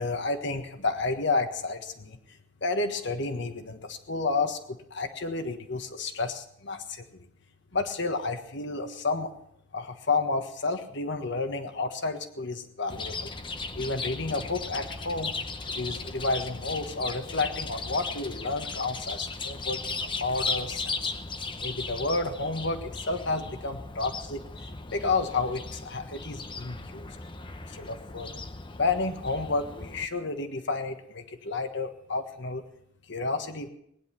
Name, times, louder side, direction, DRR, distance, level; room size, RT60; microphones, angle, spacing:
voice 1, 0.0-7.2 7.7-9.3 9.7-13.3 13.7-21.1 21.6-24.4 24.9-27.1 27.7-28.3 28.8-32.6 33.1-33.7, left 3 dB, 60° left, 7 dB, 1.5 m, -31 dB
Chirp tweet, 12.9-30.1, left 3 dB, 25° left, 0.8 m, -37 dB
19.5 x 10.5 x 5.9 m, 0.71 s
head